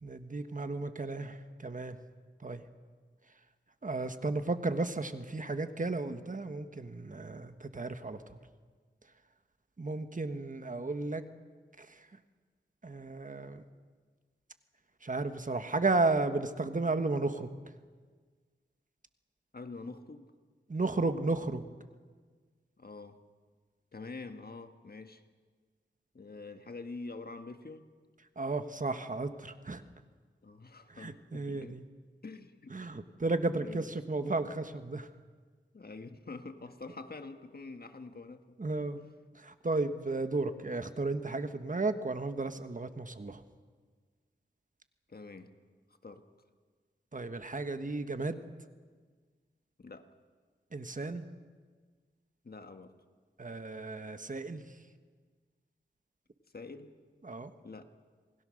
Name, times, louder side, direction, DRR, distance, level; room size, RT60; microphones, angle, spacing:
voice 1, 0.0-2.0 2.4-2.6 3.8-8.4 9.8-11.2 11.8-12.1 12.8-13.6 15.0-17.5 20.7-21.7 28.4-29.8 30.9-31.8 32.7-35.1 38.6-39.0 39.3-43.4 47.1-48.4 50.7-51.3 53.4-54.7 57.2-57.5, right 3 dB, 40° right, 9 dB, 1.4 m, -34 dB
voice 2, 19.5-20.3 22.8-23.2 23.9-25.2 26.1-27.9 30.4-31.8 32.2-32.7 33.6-33.9 35.7-38.5 45.1-45.5 46.0-46.2 49.8-50.1 52.4-52.9 56.5-56.9 57.6-57.9, left 3 dB, 50° left, 7 dB, 1.6 m, -46 dB
27.5 x 21.0 x 6.5 m, 1.5 s
wide cardioid pair, 70°, 20 cm